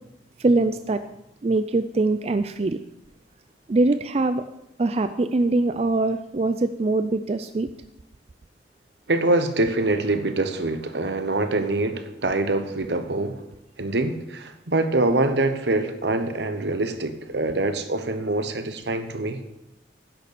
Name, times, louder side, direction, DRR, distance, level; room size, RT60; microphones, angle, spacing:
voice 1, 0.4-1.0 1.4-2.8 3.7-4.4 4.8-7.7, right 2 dB, 35° right, 0.4 m, -22 dB
voice 2, 9.1-13.4 13.8-19.4, right 2 dB, 75° right, 1.0 m, -24 dB
10.5 x 6.7 x 6.8 m
head